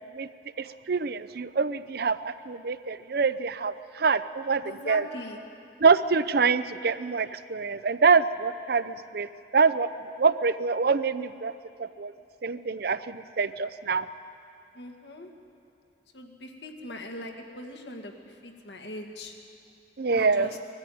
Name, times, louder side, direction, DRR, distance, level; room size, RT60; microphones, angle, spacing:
voice 1, 0.6-5.0 5.8-9.9 10.2-11.5 11.8-12.1 12.4-14.1 20.0-20.5, right 5 dB, 55° right, 13 dB, 0.6 m, -25 dB
voice 2, 4.6-5.4 14.7-15.3 16.1-19.4 20.1-20.6, left 1 dB, 65° left, 3 dB, 1.9 m, -41 dB
20.0 x 14.0 x 9.2 m, 2.6 s
head